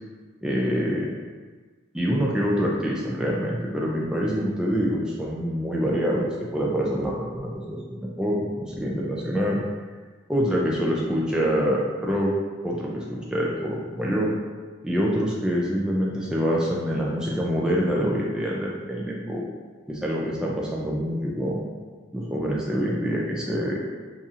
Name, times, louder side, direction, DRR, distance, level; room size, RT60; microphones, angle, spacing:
voice 1, 0.4-1.1 1.9-9.6 10.3-12.3 12.6-14.3 14.8-19.4 19.9-21.7 22.1-23.8, equal, 5° right, -4 dB, 0.3 m, -26 dB
4.0 x 2.7 x 2.4 m, 1.4 s
head